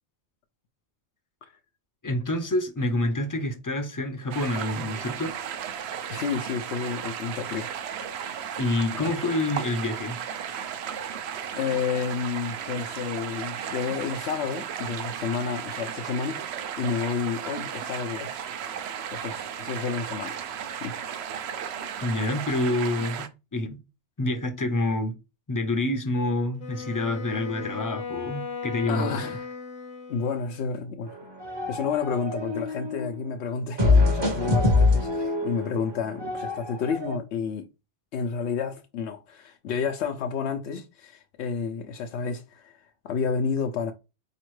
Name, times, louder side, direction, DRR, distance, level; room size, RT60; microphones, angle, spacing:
voice 1, 2.0-5.4 8.6-10.2 22.0-23.8 24.2-25.1 25.5-29.3, left 2 dB, 25° left, 0.4 m, -27 dB
sound 1, 4.3-23.3, right 8 dB, 75° right, 0.8 m, -35 dB
voice 2, 6.1-7.7 8.4-8.5 8.9-9.1 11.5-16.4 16.8-18.4 19.1-20.4 20.8-20.9 28.9-29.4 30.1-31.2 31.7-37.7 38.1-42.7 43.0-43.9, left 6 dB, 85° left, 0.9 m, -30 dB
Wind instrument woodwind instrument, 26.6-30.7, left 5 dB, 55° left, 0.8 m, -37 dB
sound 2, 31.1-33.2 33.8-37.2, left 3 dB, 25° right, 0.7 m, -24 dB
4.2 x 2.9 x 3.1 m
omnidirectional pair, 1.1 m